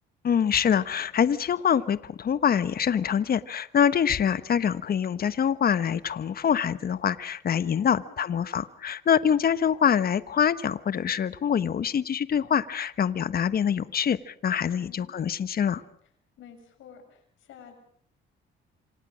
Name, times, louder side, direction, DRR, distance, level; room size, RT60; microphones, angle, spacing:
voice 1, 0.2-15.8, left 8 dB, 50° left, 15 dB, 1.2 m, -25 dB
voice 2, 7.7-8.1 14.8-15.1 16.4-17.8, left 7 dB, 80° left, 6 dB, 6.8 m, -50 dB
27.5 x 26.0 x 6.4 m, 0.63 s
cardioid pair, 90°, 20 cm